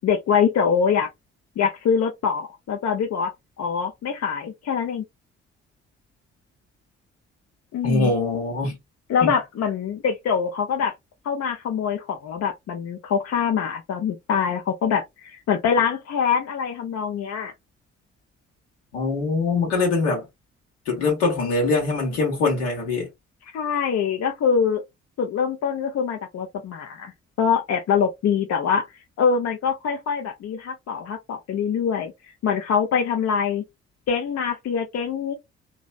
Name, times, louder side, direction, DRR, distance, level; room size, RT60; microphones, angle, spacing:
voice 1, 0.0-1.1 1.6-5.0 7.7-8.1 9.1-10.9 11.2-17.5 23.5-24.8 25.2-27.1 27.4-28.9 29.2-32.1 32.4-33.6 34.1-35.3, left 6 dB, 50° left, 0.7 m, -24 dB
voice 2, 7.8-8.8 9.2-9.3 18.9-20.2 20.9-23.1, left 3 dB, 75° left, 1.4 m, -23 dB
3.0 x 2.7 x 2.3 m
figure-of-eight pair, 40°, 33 cm